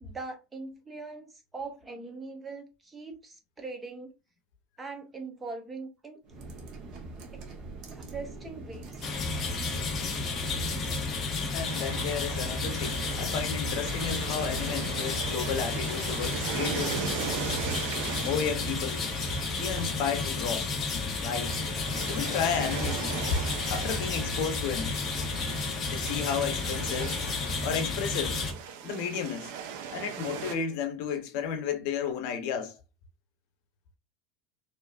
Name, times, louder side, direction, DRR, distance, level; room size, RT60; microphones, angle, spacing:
voice 1, 0.0-4.1 4.8-6.2 7.3-7.4 7.9-9.1, right 3 dB, 15° right, 0.6 m, -41 dB
sound 1, 6.2-11.6, right 2 dB, 45° right, 0.9 m, -43 dB
sound 2, 9.0-28.5, left 3 dB, 25° left, 0.8 m, -32 dB
voice 2, 11.5-17.1 18.2-19.1 19.6-20.7 21.1-21.5 22.1-23.2 23.7-25.0 25.8-27.2 27.6-28.4 28.8-29.5 29.9-32.8, left 7 dB, 60° left, 0.7 m, -33 dB
sound 3, 11.7-30.6, right 7 dB, 70° right, 0.6 m, -39 dB
4.5 x 2.6 x 2.4 m
cardioid pair, 170°, 0 cm